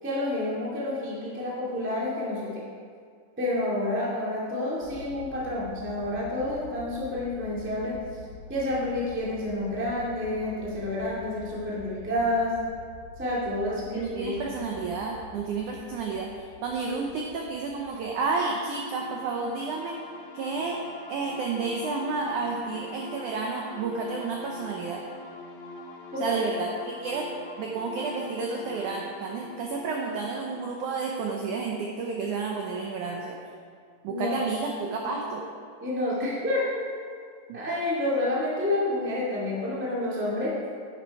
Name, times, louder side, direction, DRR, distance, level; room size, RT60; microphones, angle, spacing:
voice 1, 0.0-2.6 3.4-7.9 8.5-12.5 13.2-14.7 26.1-26.4 34.1-34.4 35.0-35.1 35.8-36.7 37.5-40.5, left 1 dB, 10° right, -6 dB, 0.7 m, -29 dB
sound 1, 4.8-18.0, left 3 dB, 35° left, 3.1 m, -47 dB
voice 2, 13.9-16.3 16.6-20.0 20.3-20.8 21.1-25.0 26.2-27.3 27.6-33.4 34.0-35.4 37.5-37.6, right 4 dB, 85° right, 0 dB, 1.7 m, -31 dB
sound 2, 18.2-31.7, left 2 dB, 70° left, 1.9 m, -44 dB
10.0 x 8.1 x 4.7 m, 2.1 s
omnidirectional pair, 4.6 m